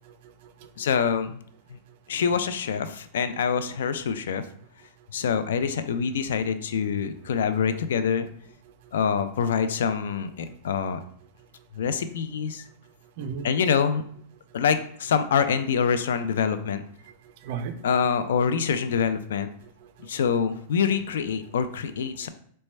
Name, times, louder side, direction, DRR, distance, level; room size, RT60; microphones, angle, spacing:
voice 1, 0.0-0.7 13.2-13.5 16.7-16.8 17.1-17.2 17.4-17.9 19.6-20.6 21.8-21.9 22.2-22.3, right 6 dB, 55° right, 0.4 m, -38 dB
voice 2, 0.8-1.4 1.7-1.8 2.1-4.4 5.1-8.3 8.9-11.0 11.7-12.6 13.4-14.0 14.5-16.8 17.8-19.5 20.1-22.3, left 6 dB, 85° left, 0.3 m, -25 dB
4.1 x 2.2 x 3.1 m
supercardioid pair, 145°, 0 cm